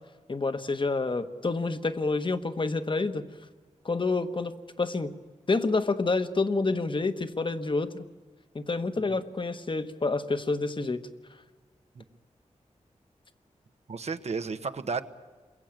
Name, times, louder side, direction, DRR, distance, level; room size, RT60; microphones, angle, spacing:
voice 1, 0.3-3.2 3.8-5.1 5.5-8.1 8.5-11.0, left 3 dB, 40° left, 11 dB, 1.4 m, -28 dB
voice 2, 13.9-15.0, right 4 dB, 60° right, 10 dB, 1.1 m, -33 dB
29.0 x 22.0 x 9.0 m, 1.3 s
wide cardioid pair, 80°, 12 cm